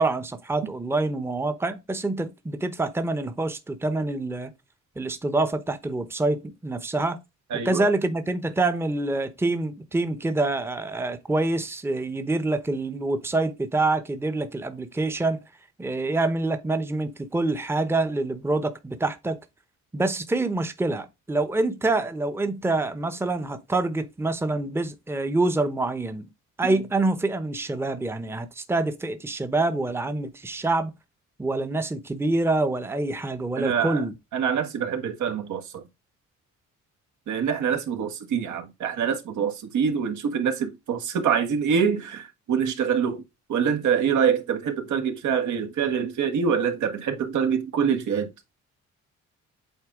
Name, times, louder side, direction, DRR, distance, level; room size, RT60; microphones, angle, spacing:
voice 1, 0.0-4.5 5.0-7.2 7.6-15.4 15.8-19.4 19.9-26.3 26.6-30.9 31.4-34.1, right 2 dB, 10° right, 0.8 m, -26 dB
voice 2, 7.5-7.9 33.6-34.0 34.3-35.8 37.3-43.2 43.5-48.3, right 7 dB, 75° right, 1.5 m, -25 dB
8.0 x 4.1 x 3.6 m
cardioid pair, 90°, 30 cm